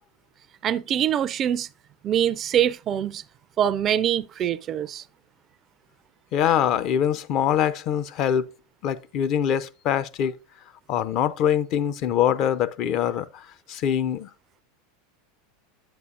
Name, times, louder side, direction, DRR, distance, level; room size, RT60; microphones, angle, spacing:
voice 1, 0.6-1.7 2.0-3.2 3.6-5.0, right 10 dB, 35° right, 0.3 m, -24 dB
voice 2, 6.3-8.5 8.8-10.3 10.9-13.4 13.7-14.3, left 9 dB, 45° left, 0.5 m, -23 dB
8.8 x 8.1 x 2.4 m
figure-of-eight pair, 85°, 0 cm